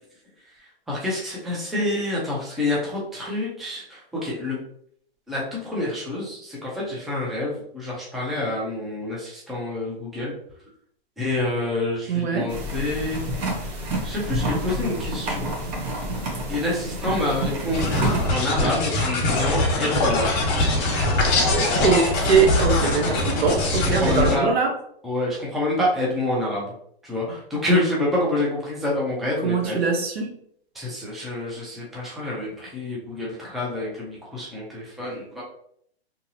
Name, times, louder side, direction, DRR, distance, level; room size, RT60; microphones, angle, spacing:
voice 1, 0.9-4.6 5.3-10.4 11.2-13.3 13.7-15.5 16.5-20.3 21.7-21.9 24.0-24.5 25.0-26.7 27.0-29.8 30.7-35.4, left 2 dB, ahead, -5 dB, 0.5 m, -27 dB
voice 2, 12.1-12.5 21.8-24.7 29.4-30.3, right 5 dB, 75° right, 2 dB, 0.9 m, -22 dB
sound 1, 12.5-18.3, right 1 dB, 40° right, 0.9 m, -28 dB
sound 2, 17.7-24.3, left 2 dB, 40° left, 1.3 m, -22 dB
2.8 x 2.6 x 2.7 m, 0.66 s
hypercardioid pair, 130°, 32 cm